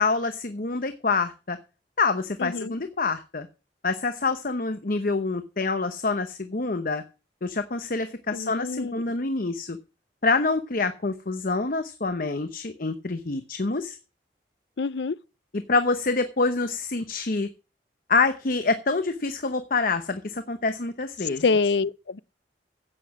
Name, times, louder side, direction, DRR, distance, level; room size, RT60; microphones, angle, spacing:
voice 1, 0.0-1.6 2.0-3.5 3.8-7.0 7.4-9.8 10.2-14.0 15.5-17.5 18.1-21.4, left 3 dB, 55° left, 0.9 m, -26 dB
voice 2, 2.4-2.7 8.3-9.0 14.8-15.2 21.4-22.2, left 4 dB, 75° left, 0.5 m, -26 dB
11.0 x 8.5 x 6.2 m
head